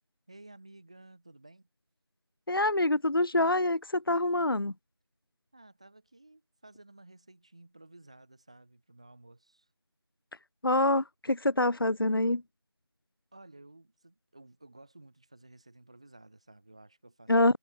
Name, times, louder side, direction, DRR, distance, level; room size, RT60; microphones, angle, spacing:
voice 1, 0.3-1.7 5.5-9.7 13.3-17.6, right 2 dB, 15° right, 4.1 m, -55 dB
voice 2, 2.5-4.7 10.6-12.4 17.3-17.6, left 2 dB, 60° left, 0.6 m, -26 dB
figure-of-eight pair, 175°, 14 cm